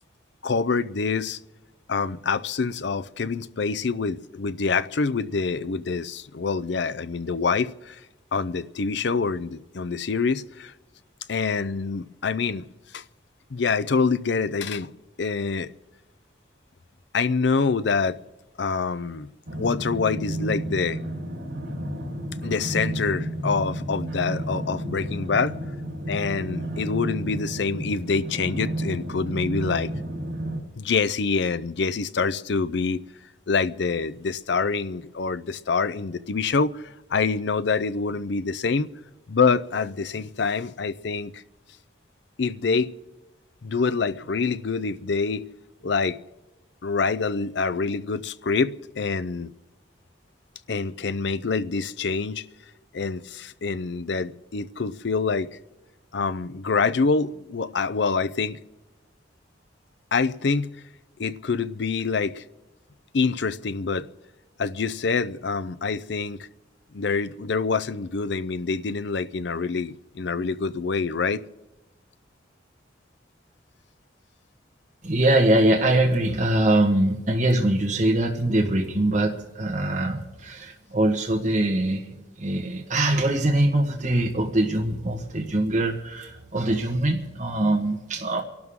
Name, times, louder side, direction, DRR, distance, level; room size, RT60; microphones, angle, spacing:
voice 1, 0.4-1.4 1.9-8.0 8.3-10.7 11.3-12.7 12.9-13.0 13.5-14.9 15.2-15.7 17.1-18.2 18.6-19.3 19.6-21.0 22.4-25.6 26.1-29.9 30.8-33.0 33.5-36.8 37.1-38.9 39.3-41.4 42.4-42.9 43.6-45.4 45.8-46.2 46.8-49.5 50.7-52.4 52.9-55.5 56.1-58.6 60.1-60.7 61.2-62.4 63.1-64.1 64.6-66.4 66.9-71.4, left 4 dB, 65° left, 0.5 m, -26 dB
sound 1, 19.5-30.6, right 1 dB, 80° right, 4.0 m, -31 dB
voice 2, 75.0-82.0 82.4-88.4, right 1 dB, 40° right, 1.4 m, -23 dB
29.0 x 12.0 x 3.7 m
head